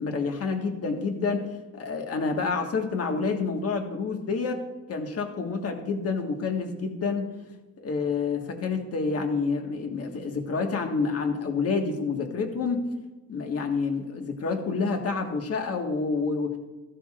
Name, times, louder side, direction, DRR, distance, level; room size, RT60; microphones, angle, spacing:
voice 1, 0.0-1.5 1.7-4.6 4.9-7.3 7.8-12.8 13.3-16.6, left 4 dB, 50° left, 4 dB, 1.7 m, -28 dB
14.5 x 12.0 x 2.5 m, 1.1 s
cardioid pair, 90°, 30 cm